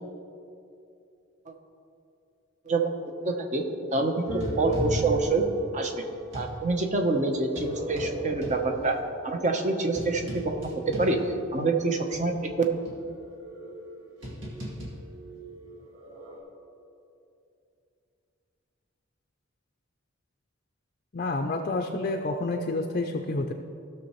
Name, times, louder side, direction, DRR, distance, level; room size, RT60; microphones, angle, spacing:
voice 1, 3.2-3.6 3.9-5.4 5.7-6.0 6.3-9.0 9.2-10.7 11.0-11.2 11.5-12.5, right 3 dB, 35° right, 3 dB, 0.9 m, -26 dB
sound 1, 4.3-6.6 7.3-11.7 12.1-12.2 12.8-16.4, equal, 65° right, 2.1 m, -36 dB
voice 2, 21.1-23.5, left 2 dB, 40° left, 4 dB, 0.5 m, -29 dB
17.0 x 6.5 x 3.1 m, 2.6 s
head